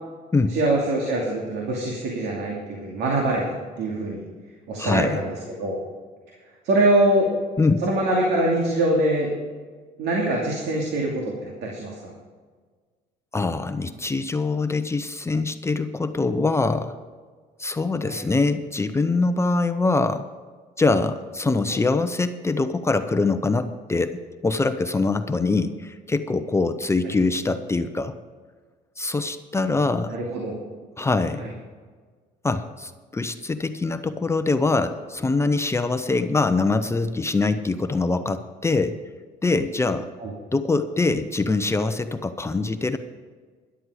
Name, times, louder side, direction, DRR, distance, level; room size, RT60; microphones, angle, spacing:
voice 1, 0.5-4.2 4.7-5.8 6.6-7.3 7.8-9.3 10.0-12.1 18.0-18.2 21.7-21.8 29.8-30.5 31.4-31.5 40.2-40.3, right 1 dB, 80° right, -1 dB, 2.6 m, -24 dB
voice 2, 4.8-5.2 7.6-7.8 13.3-17.0 17.6-20.3 20.8-28.1 29.0-30.1 31.0-31.4 32.4-39.0 39.4-40.1 40.5-43.0, left 3 dB, 15° left, 9 dB, 0.7 m, -23 dB
13.0 x 11.5 x 4.9 m, 1.5 s
cardioid pair, 110°, 17 cm